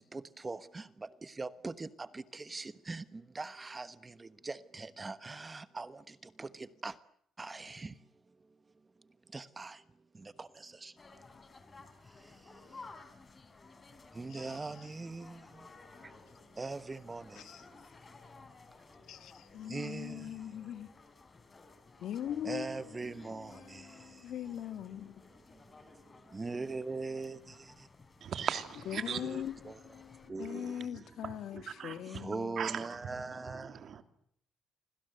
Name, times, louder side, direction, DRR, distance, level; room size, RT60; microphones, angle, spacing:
voice 1, 0.0-6.9 7.4-7.9 9.3-9.8 10.2-10.9 14.2-15.4 16.6-17.4 19.7-20.3 22.4-23.9 26.3-27.5 29.1-29.8 30.3-30.7 32.1-33.8, right 3 dB, 20° right, 1.2 m, -41 dB
sound 1, 11.0-30.3, left 3 dB, 25° left, 4.0 m, -56 dB
voice 2, 14.3-14.9 17.4-17.6 19.1-20.9 22.0-25.3 28.9-29.5 29.8-32.6, left 10 dB, 70° left, 2.0 m, -42 dB
voice 3, 28.2-29.4 30.4-32.3 32.6-34.0, right 8 dB, 55° right, 2.8 m, -40 dB
30.0 x 25.0 x 8.0 m
cardioid pair, 145°, 0 cm